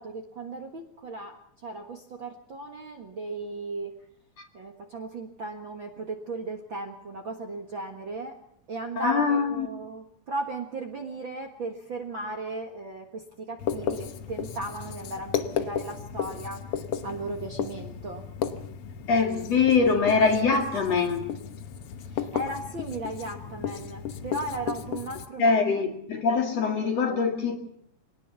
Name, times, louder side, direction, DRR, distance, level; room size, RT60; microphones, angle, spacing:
voice 1, 0.0-3.9 4.5-8.4 8.7-18.2 22.0-25.8, right 2 dB, 45° right, 1.7 m, -36 dB
voice 2, 9.0-9.7 19.1-21.3 25.4-27.6, left 5 dB, 50° left, 3.0 m, -23 dB
Writing, 13.6-25.3, left 8 dB, 80° left, 1.3 m, -34 dB
24.0 x 19.5 x 7.0 m
omnidirectional pair, 4.2 m